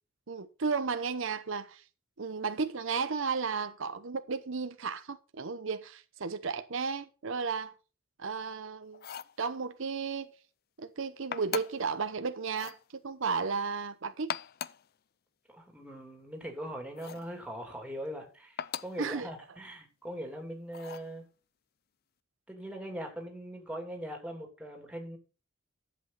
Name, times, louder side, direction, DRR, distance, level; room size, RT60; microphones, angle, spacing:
voice 1, 0.3-1.8 2.2-7.7 8.2-9.1 9.4-10.3 10.8-14.3 19.0-19.3, right 5 dB, 70° right, 0.8 m, -34 dB
sound 1, 8.9-9.4 11.3-11.9 12.5-12.8 14.1-14.9 17.0-17.3 18.6-19.0 20.7-21.1, left 8 dB, 50° left, 0.5 m, -39 dB
voice 2, 15.5-21.2 22.5-25.2, equal, 5° right, 2.8 m, -41 dB
11.5 x 7.9 x 4.0 m
head